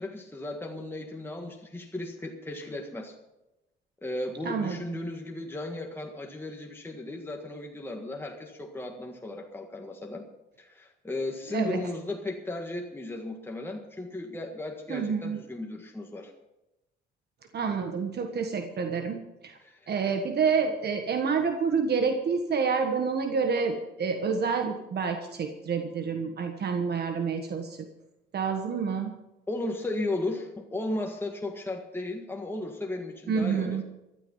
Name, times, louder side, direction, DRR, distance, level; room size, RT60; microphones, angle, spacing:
voice 1, 0.0-3.1 4.0-10.3 10.6-16.3 19.6-19.9 29.5-33.8, left 2 dB, 10° left, 1 dB, 1.7 m, -35 dB
voice 2, 4.4-4.8 11.5-11.8 14.9-15.4 17.5-19.2 19.4-19.6 19.9-27.8 28.3-29.1 33.3-33.8, right 5 dB, 55° right, 6 dB, 1.4 m, -28 dB
15.0 x 12.0 x 5.6 m, 0.95 s
cardioid pair, 90°, 20 cm